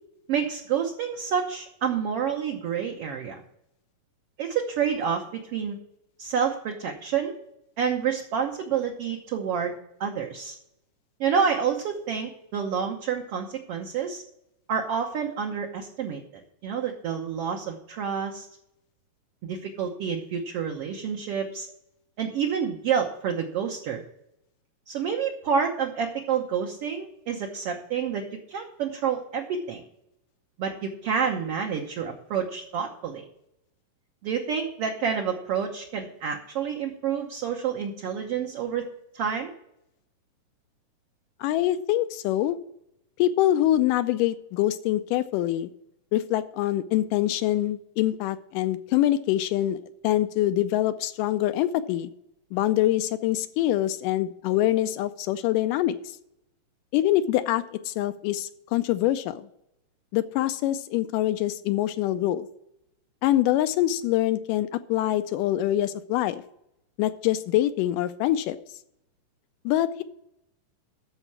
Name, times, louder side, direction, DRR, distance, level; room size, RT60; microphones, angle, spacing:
voice 1, 0.3-3.4 4.4-5.8 6.2-7.4 7.8-10.5 11.2-14.2 14.7-16.2 16.6-18.5 19.4-21.7 22.2-24.0 24.9-29.8 30.6-33.2 34.2-38.9 39.1-39.5, right 7 dB, 65° right, 0 dB, 1.5 m, -28 dB
voice 2, 41.4-42.6 43.2-45.7 46.1-52.1 52.5-56.0 56.9-59.5 60.1-62.5 63.2-66.4 67.0-68.6 69.7-70.0, left 13 dB, 80° left, 11 dB, 2.1 m, -25 dB
13.0 x 4.5 x 7.3 m, 0.80 s
omnidirectional pair, 3.9 m